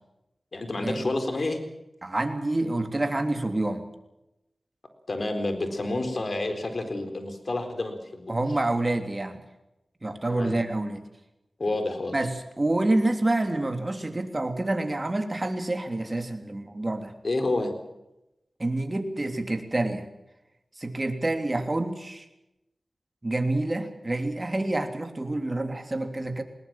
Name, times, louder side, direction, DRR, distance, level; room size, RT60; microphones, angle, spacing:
voice 1, 0.5-1.6 5.1-8.4 10.3-10.6 11.6-12.2 17.2-17.7, left 2 dB, 60° left, 7 dB, 4.1 m, -29 dB
voice 2, 2.0-3.8 8.3-9.4 10.0-11.0 12.1-17.1 18.6-20.0 20.8-22.3 23.2-26.4, right 2 dB, 35° right, 6 dB, 3.2 m, -27 dB
20.5 x 19.5 x 7.6 m, 0.90 s
cardioid pair, 50°, 0 cm